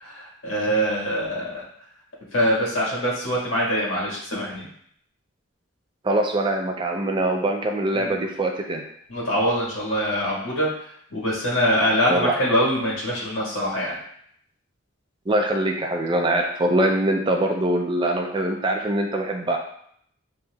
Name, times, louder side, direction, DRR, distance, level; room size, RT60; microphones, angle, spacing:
voice 1, 0.0-1.6 2.3-4.7 7.9-8.3 9.1-10.7 11.1-13.9, equal, 70° left, -5 dB, 1.6 m, -24 dB
voice 2, 6.0-8.8 12.1-12.3 15.3-19.6, right 1 dB, 25° right, 2 dB, 0.4 m, -23 dB
6.9 x 2.8 x 2.3 m, 0.67 s
head